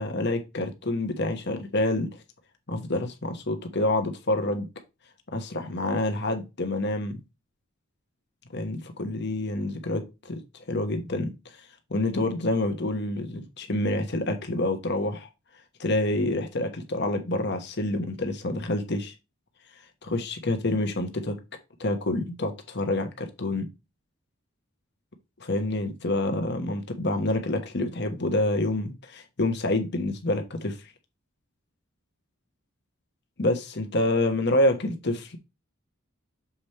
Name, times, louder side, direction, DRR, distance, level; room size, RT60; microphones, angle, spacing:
voice 1, 0.0-2.1 2.7-4.7 5.3-7.2 8.5-10.4 10.7-11.6 11.9-15.3 15.8-19.1 20.0-21.4 21.8-23.7 25.4-30.8 33.4-35.4, left 1 dB, 55° left, 6 dB, 1.2 m, -27 dB
7.1 x 4.2 x 3.3 m, 0.25 s
head